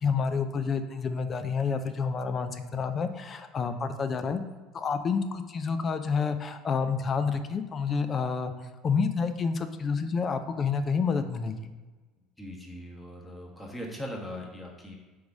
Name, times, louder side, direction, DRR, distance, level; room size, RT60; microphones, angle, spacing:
voice 1, 0.0-4.4 4.7-11.7, left 5 dB, 35° left, 9 dB, 0.5 m, -29 dB
voice 2, 12.4-14.9, equal, 10° left, -1 dB, 1.4 m, -40 dB
4.7 x 3.9 x 5.2 m, 1.2 s
figure-of-eight pair, 65°, 0 cm